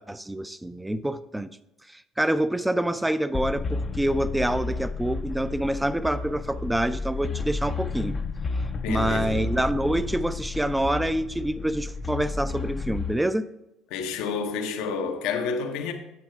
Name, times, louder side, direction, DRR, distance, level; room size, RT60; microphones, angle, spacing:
voice 1, 0.0-1.5 1.9-8.2 8.9-13.5, right 1 dB, 10° right, 0.5 m, -26 dB
sound 1, 3.3-13.1, left 4 dB, 40° left, 0.6 m, -32 dB
voice 2, 8.8-9.4 13.9-15.9, left 5 dB, 75° left, 0.9 m, -29 dB
8.3 x 6.3 x 4.6 m
hypercardioid pair, 70°, 0 cm